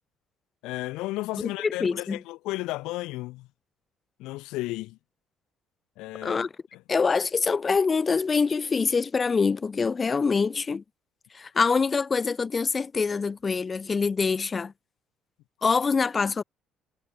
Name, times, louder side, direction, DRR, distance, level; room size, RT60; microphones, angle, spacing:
voice 1, 0.6-3.5 4.2-5.0 6.0-6.5 6.7-6.8, left 19 dB, 75° left, 2.0 m, -33 dB
voice 2, 1.6-2.2 6.2-6.5 6.9-10.8 11.3-14.7 15.6-16.4, left 5 dB, 35° left, 2.1 m, -25 dB
hypercardioid pair, 55°, 0 cm